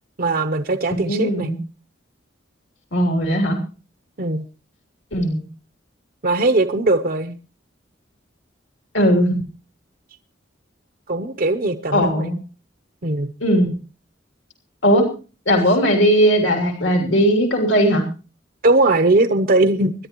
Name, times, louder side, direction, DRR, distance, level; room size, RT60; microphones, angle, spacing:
voice 1, 0.2-1.5 4.2-4.4 6.2-7.4 11.1-12.3 13.0-13.3 18.6-19.9, right 2 dB, 50° right, 0.8 m, -19 dB
voice 2, 0.9-1.6 2.9-3.6 5.1-5.4 8.9-9.4 11.9-12.4 13.4-13.7 14.8-15.0 15.5-18.0, equal, 75° left, 3.2 m, -18 dB
24.5 x 11.0 x 3.0 m
head